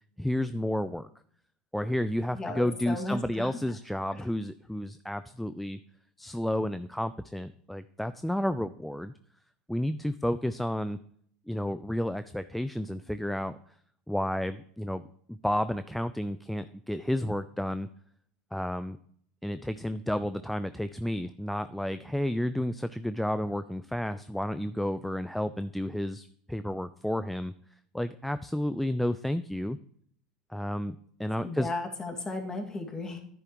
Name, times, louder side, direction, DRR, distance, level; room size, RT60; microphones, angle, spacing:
voice 1, 0.2-1.1 1.7-5.8 6.2-9.1 9.7-11.0 11.5-13.6 14.1-15.0 15.3-17.9 18.5-19.0 19.4-27.5 27.9-29.8 30.5-31.7, left 1 dB, 5° left, 12 dB, 0.4 m, -31 dB
voice 2, 2.3-3.5 4.1-4.2 31.4-33.2, left 2 dB, 20° left, 3 dB, 2.2 m, -35 dB
10.5 x 9.7 x 3.1 m, 0.63 s
hypercardioid pair, 95°, 3 cm